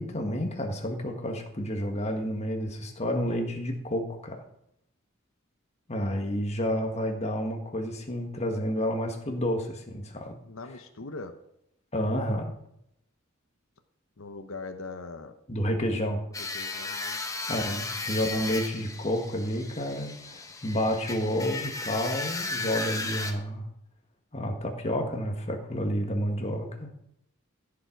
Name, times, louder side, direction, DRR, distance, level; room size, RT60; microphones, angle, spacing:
voice 1, 0.0-4.4 5.9-10.3 11.9-12.5 15.5-16.2 17.5-23.7 24.3-26.9, equal, 30° left, 4 dB, 1.7 m, -30 dB
voice 2, 10.4-11.4 14.2-15.3 16.4-17.2 17.9-18.2, left 3 dB, 70° left, 7 dB, 0.9 m, -41 dB
sound 1, 16.3-23.3, left 3 dB, 15° left, 1.1 m, -35 dB
15.0 x 7.4 x 4.6 m, 0.75 s
head